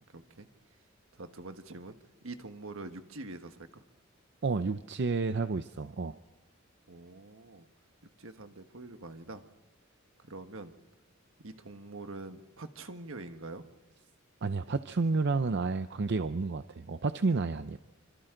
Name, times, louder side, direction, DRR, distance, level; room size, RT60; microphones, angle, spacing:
voice 1, 0.1-0.5 1.1-2.0 2.2-3.8 6.9-7.7 8.2-9.4 10.2-10.7 11.4-13.6 17.5-17.6, right 2 dB, 75° right, 7 dB, 1.5 m, -45 dB
voice 2, 4.4-6.1 14.4-17.8, right 4 dB, 55° right, 11 dB, 0.6 m, -30 dB
27.0 x 25.5 x 3.9 m, 1.1 s
head